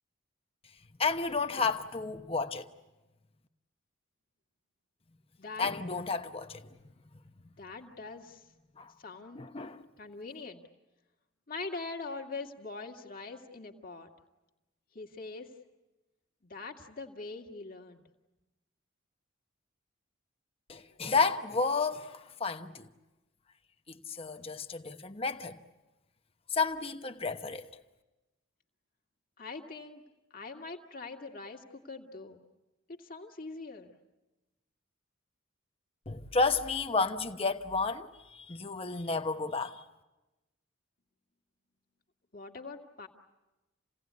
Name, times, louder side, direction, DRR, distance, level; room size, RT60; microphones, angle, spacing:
voice 1, 1.0-2.7 5.6-6.7 8.8-8.9 9.3-9.8 20.7-22.9 23.9-25.6 26.5-27.7 36.1-39.8, left 4 dB, 30° left, 1.0 m, -31 dB
voice 2, 5.4-5.8 7.6-8.5 9.0-9.4 10.0-10.6 11.5-14.1 14.9-15.5 16.4-18.1 29.4-30.0 30.3-32.4 32.9-33.9 42.3-43.1, left 3 dB, 45° left, 2.1 m, -43 dB
29.0 x 17.5 x 9.6 m
head